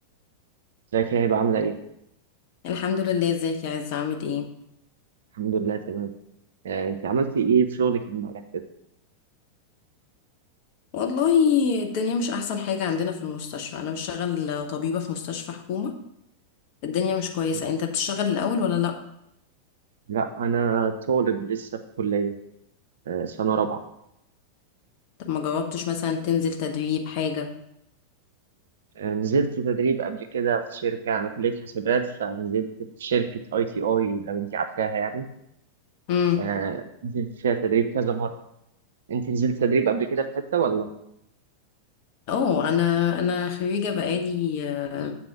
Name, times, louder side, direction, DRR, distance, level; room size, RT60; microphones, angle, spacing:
voice 1, 0.9-1.7 5.4-6.1 6.6-8.6 20.1-21.7 22.0-22.3 23.1-23.8 29.0-32.7 33.0-35.2 36.4-38.3 39.1-40.3 40.5-40.9, right 6 dB, 60° right, 9 dB, 0.5 m, -25 dB
voice 2, 2.6-4.5 10.9-15.9 16.8-18.9 25.2-27.5 36.1-36.4 42.3-45.1, left 7 dB, 45° left, 3 dB, 0.8 m, -25 dB
7.6 x 4.1 x 5.8 m, 0.79 s
figure-of-eight pair, 90°, 0 cm